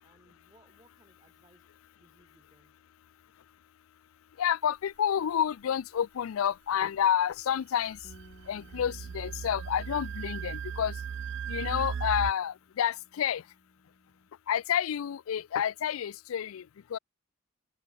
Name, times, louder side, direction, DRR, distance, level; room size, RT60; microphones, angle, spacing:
voice 1, 0.0-1.7 2.0-2.8, right 1 dB, 20° right, 7.6 m, -64 dB
voice 2, 4.4-8.0 8.5-11.0 11.5-13.4 14.5-17.0, left 9 dB, 90° left, 0.4 m, -29 dB
sound 1, 7.9-12.3, right 7 dB, 60° right, 0.3 m, -37 dB
Bass guitar, 8.0-14.3, left 1 dB, 45° left, 2.7 m, -60 dB
head